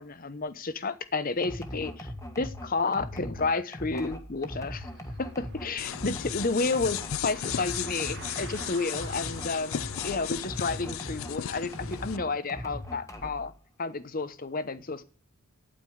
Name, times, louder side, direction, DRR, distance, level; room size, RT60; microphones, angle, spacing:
voice 1, 0.0-4.9 5.2-13.5 13.8-15.0, left 3 dB, 40° left, 0.9 m, -31 dB
sound 1, 1.4-11.4 11.7-13.5, left 1 dB, 15° left, 1.5 m, -40 dB
Car, 4.6-13.1, right 6 dB, 50° right, 1.0 m, -50 dB
sound 2, 5.8-12.2, left 10 dB, 70° left, 0.4 m, -35 dB
9.8 x 9.0 x 4.9 m
head